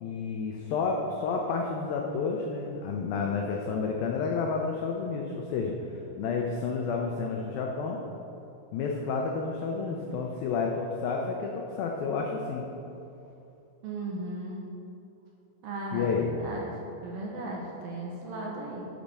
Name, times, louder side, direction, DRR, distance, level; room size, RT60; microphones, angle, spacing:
voice 1, 0.0-5.8 6.2-8.0 8.7-12.7 15.9-16.3, left 5 dB, 90° left, 1 dB, 2.0 m, -30 dB
voice 2, 13.8-14.6 15.6-16.7 17.0-18.9, right 2 dB, 70° right, -2 dB, 2.3 m, -36 dB
8.4 x 7.5 x 6.8 m, 2.8 s
omnidirectional pair, 5.1 m